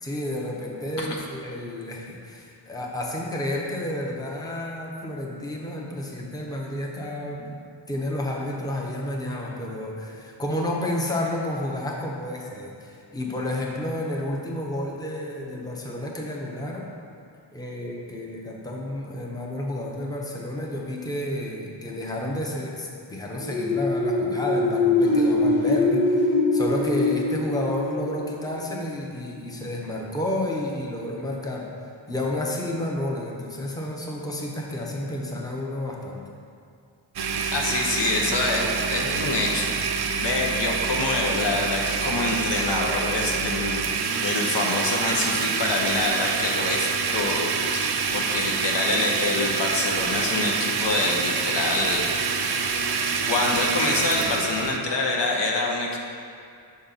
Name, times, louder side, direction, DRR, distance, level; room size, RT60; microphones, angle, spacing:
voice 1, 0.0-7.6 7.9-16.9 17.5-36.2, left 1 dB, 10° left, -2 dB, 0.7 m, -31 dB
sound 1, 23.3-29.0, left 2 dB, 90° left, 1.4 m, -23 dB
Domestic sounds home sounds, 37.2-54.8, right 5 dB, 60° right, 0.5 m, -26 dB
voice 2, 37.5-43.8 44.2-52.1 53.3-56.0, left 3 dB, 65° left, -1 dB, 0.8 m, -26 dB
6.0 x 4.2 x 4.0 m, 2.3 s
wide cardioid pair, 60°, 45 cm